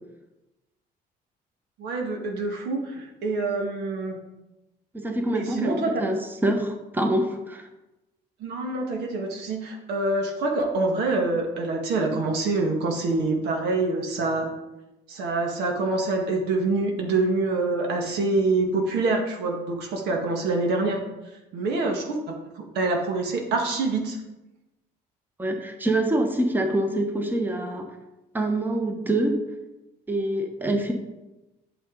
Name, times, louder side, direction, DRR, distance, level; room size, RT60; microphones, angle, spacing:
voice 1, 1.8-4.2 5.3-6.1 8.4-14.5 15.1-21.0 21.5-24.2, right 3 dB, 85° right, 2 dB, 1.7 m, -26 dB
voice 2, 4.9-7.7 25.4-27.9 28.3-29.4 30.1-30.9, right 1 dB, 10° right, 4 dB, 1.1 m, -25 dB
8.5 x 6.9 x 3.9 m, 0.99 s
cardioid pair, 110°, 17 cm